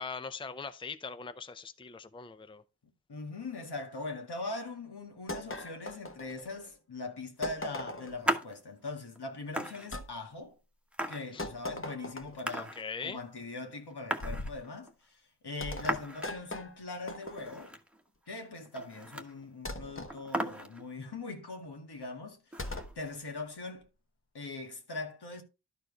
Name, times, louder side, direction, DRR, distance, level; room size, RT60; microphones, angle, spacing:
voice 1, 0.0-2.6 11.3-11.5 12.6-13.2, left 5 dB, 15° left, 0.5 m, -41 dB
voice 2, 3.1-10.6 11.1-17.8 18.3-22.7 23.0-23.9 24.3-25.4, left 3 dB, 75° left, 2.0 m, -41 dB
sound 1, 5.3-6.7 7.4-8.3 9.9-10.1 11.4-12.5 14.2-14.6 15.6-17.7 19.7-20.2 22.6-23.0, left 1 dB, 30° left, 1.1 m, -40 dB
Green Bean, 8.2-8.6 9.2-9.3 9.5-10.3 10.9-11.9 12.4-13.2 13.4-13.5 13.7-14.9 15.7-16.4 16.8-16.9 17.2-18.0 18.3-18.4 18.6-19.5 19.8-19.9 20.1-21.0 22.5-23.2, right 1 dB, 5° right, 1.2 m, -37 dB
12.0 x 4.6 x 4.7 m
wide cardioid pair, 70°, 40 cm